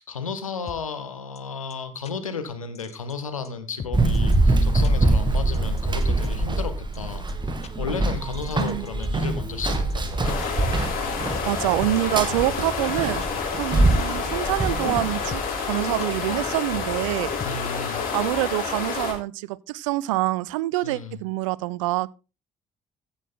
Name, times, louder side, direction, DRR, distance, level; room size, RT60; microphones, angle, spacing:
voice 1, 0.0-7.3 7.8-10.4 17.4-18.1 20.8-21.2, left 5 dB, 85° left, 1.0 m, -33 dB
sound 1, 0.7-0.8 1.4-1.5 1.7-1.8 2.0-2.1 2.7-3.1 3.4-3.5 3.8-4.4 4.8-4.9 5.5-6.4 6.9-7.0 7.3-7.4 7.6-7.7 8.3-9.1 9.4-9.9 10.4-10.5 11.1-11.9 12.5-12.6 12.9-13.0 13.2-13.3 13.9-14.3 14.6-14.7 15.0-15.5 16.0-16.1 16.7-17.5, left 7 dB, 40° left, 1.0 m, -38 dB
Run, 3.9-15.3, right 2 dB, 25° right, 1.9 m, -24 dB
sound 2, 10.2-19.1, left 5 dB, 60° left, 3.4 m, -29 dB
voice 2, 11.2-13.2 13.5-17.3 18.1-22.1, right 18 dB, 70° right, 0.4 m, -26 dB
15.5 x 6.3 x 3.9 m
figure-of-eight pair, 45°, 17 cm